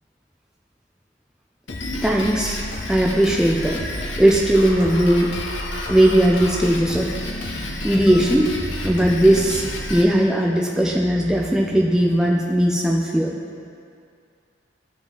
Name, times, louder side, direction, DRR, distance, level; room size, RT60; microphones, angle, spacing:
Drum kit, 1.7-10.0, left 1 dB, 75° left, 1.1 m, -30 dB
voice 1, 2.0-2.6 2.9-5.3 5.9-7.1 7.8-8.5 8.8-13.4, right 1 dB, 5° right, -2 dB, 0.5 m, -18 dB
14.5 x 5.0 x 3.9 m, 2.4 s
head